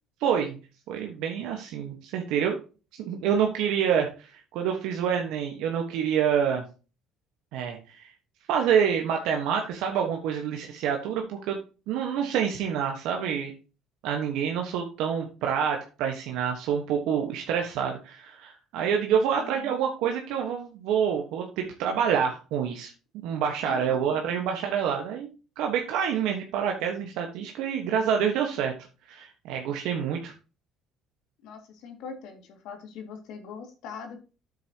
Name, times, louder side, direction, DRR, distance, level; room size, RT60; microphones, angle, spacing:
voice 1, 0.2-0.6 0.9-2.6 3.0-6.6 7.5-8.1 8.5-11.6 11.9-13.5 14.0-22.9 23.2-25.3 25.6-28.7 29.1-30.3, right 8 dB, 80° right, 2 dB, 1.4 m, -27 dB
voice 2, 19.4-19.7 23.7-24.2 31.4-34.2, left 5 dB, 75° left, 4 dB, 2.3 m, -42 dB
9.3 x 7.8 x 2.9 m, 0.33 s
cardioid pair, 95°, 0 cm